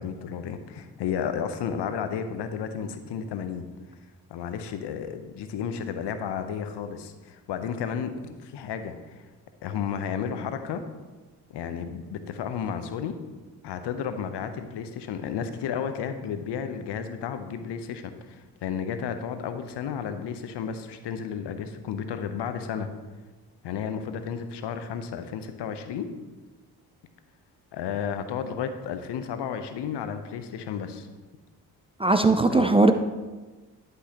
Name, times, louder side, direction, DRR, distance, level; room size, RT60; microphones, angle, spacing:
voice 1, 0.0-3.6 4.3-9.2 9.6-10.8 11.5-13.1 13.6-22.9 23.6-26.1 27.7-31.1 32.5-32.7, left 7 dB, 60° left, 9 dB, 0.9 m, -32 dB
voice 2, 32.0-32.9, right 2 dB, 15° right, 7 dB, 0.5 m, -19 dB
11.5 x 5.6 x 3.0 m, 1.3 s
hypercardioid pair, 45°, 46 cm